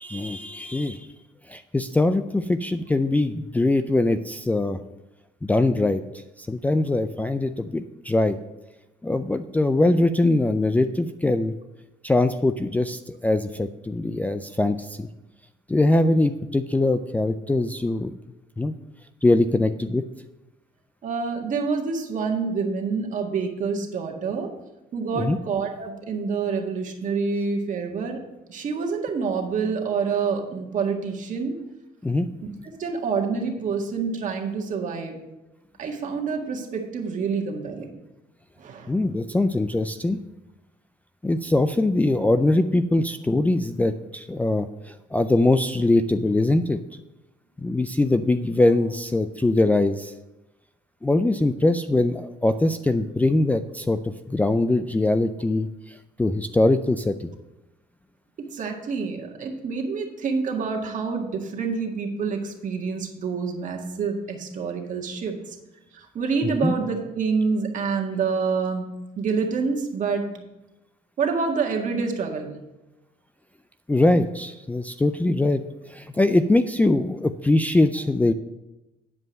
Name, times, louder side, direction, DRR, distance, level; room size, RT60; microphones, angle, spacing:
voice 1, 0.0-1.1 1.5-4.8 5.5-6.0 6.4-8.4 9.0-11.5 12.0-15.1 15.7-18.1 18.6-18.7 19.2-20.0 25.2-25.4 32.0-32.3 38.9-40.2 41.2-46.8 47.6-50.1 51.0-57.3 66.6-66.7 73.9-75.6 75.9-78.3, left 2 dB, 10° left, 10 dB, 0.4 m, -22 dB
voice 2, 21.0-24.5 24.9-28.2 28.5-31.6 32.6-35.2 35.8-38.0 38.6-39.0 58.5-65.6 65.9-68.9 69.2-70.3 71.2-72.6, right 5 dB, 50° right, 1 dB, 1.8 m, -27 dB
9.7 x 5.2 x 6.4 m, 0.99 s
cardioid pair, 110°, 17 cm